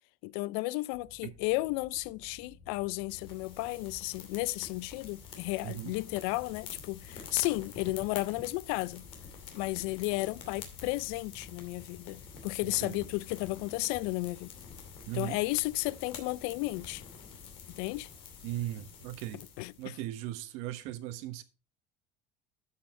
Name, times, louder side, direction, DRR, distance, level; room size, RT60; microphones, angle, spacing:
voice 1, 0.2-9.0 9.5-14.5 15.1-17.0 17.7-18.1 19.6-19.9, left 21 dB, 85° left, 0.4 m, -33 dB
sound 1, 0.9-13.2, left 3 dB, 30° left, 2.5 m, -55 dB
sound 2, 3.1-19.9, left 6 dB, 50° left, 2.5 m, -48 dB
voice 2, 5.6-5.9 12.6-13.0 15.1-15.4 18.4-19.4 19.8-21.4, right 14 dB, 65° right, 1.2 m, -38 dB
12.0 x 5.7 x 4.3 m
cardioid pair, 170°, 12 cm